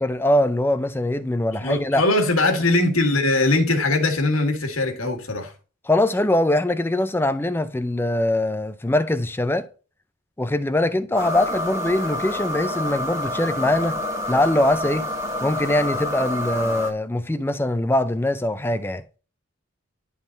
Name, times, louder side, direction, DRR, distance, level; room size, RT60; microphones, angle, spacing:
voice 1, 0.0-2.0 5.8-9.7 10.4-14.0 14.3-15.1 15.4-19.0, left 1 dB, 10° left, 0.5 m, -22 dB
voice 2, 1.6-5.5, left 2 dB, 80° left, 1.7 m, -21 dB
sound 1, 11.1-16.9, left 1 dB, 15° right, 1.6 m, -28 dB
11.0 x 3.8 x 3.9 m
head